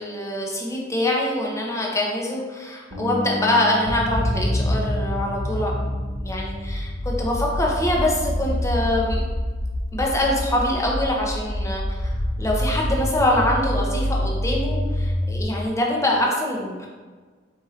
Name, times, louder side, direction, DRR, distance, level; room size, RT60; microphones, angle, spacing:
voice 1, 0.0-5.7 6.2-9.2 9.9-12.1 12.4-16.9, left 1 dB, 15° left, -2 dB, 0.7 m, -24 dB
Bass guitar, 2.9-9.1, left 1 dB, 55° right, 1.0 m, -36 dB
sound 1, 3.9-15.4, left 1 dB, 55° left, 0.6 m, -26 dB
4.6 x 2.6 x 4.0 m, 1.4 s
head